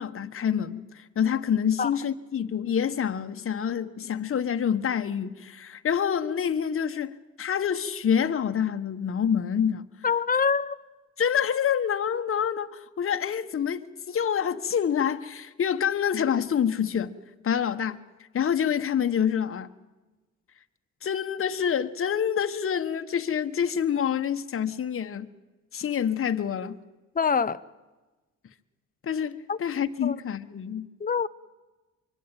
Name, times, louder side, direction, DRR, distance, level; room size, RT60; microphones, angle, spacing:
voice 1, 0.0-9.9 11.2-17.1 17.4-18.0 18.3-19.7 21.0-25.3 25.7-26.8 29.0-30.9, left 8 dB, 45° left, 1.4 m, -27 dB
voice 2, 10.0-10.8 27.1-27.6 29.5-29.6 30.0-30.2 31.0-31.3, left 6 dB, 30° left, 1.0 m, -24 dB
25.0 x 23.5 x 9.2 m
cardioid pair, 90°, 30 cm